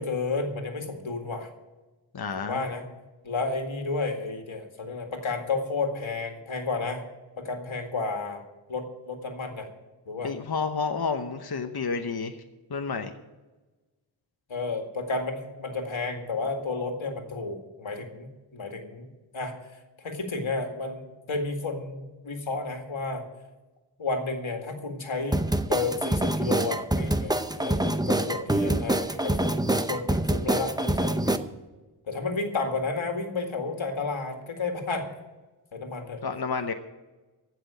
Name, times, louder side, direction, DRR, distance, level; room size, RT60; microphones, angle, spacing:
voice 1, 0.0-1.5 2.4-2.8 3.2-7.0 7.4-8.4 8.7-9.7 10.1-10.3 14.5-19.1 19.3-19.5 20.0-23.2 24.0-31.4 32.1-35.1 35.7-36.2, left 3 dB, 85° left, 4 dB, 2.1 m, -32 dB
voice 2, 2.1-2.7 10.2-12.4 12.7-13.1 36.2-36.7, left 5 dB, 55° left, 6 dB, 1.0 m, -30 dB
sound 1, 25.3-31.4, right 1 dB, 10° right, 0.7 m, -25 dB
15.5 x 6.2 x 9.0 m, 1.2 s
wide cardioid pair, 60°, 46 cm